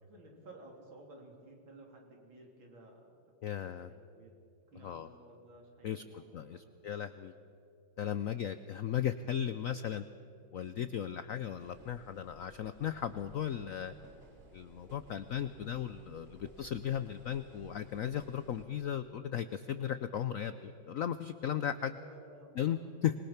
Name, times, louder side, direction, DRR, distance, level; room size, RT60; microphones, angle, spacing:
voice 1, 0.0-3.0 3.7-4.3 4.7-7.1 8.1-8.4 16.0-16.6 20.4-20.7 21.8-22.9, right 2 dB, 85° right, 0 dB, 4.1 m, -56 dB
voice 2, 3.4-3.9 4.8-5.1 5.8-6.0 6.3-7.3 8.0-10.0 10.5-13.9 14.5-22.0 22.5-23.2, left 9 dB, 75° left, 12 dB, 0.7 m, -36 dB
sound 1, 11.6-18.6, right 1 dB, 30° right, 3.4 m, -58 dB
25.5 x 21.0 x 5.9 m, 2.6 s
omnidirectional pair, 2.1 m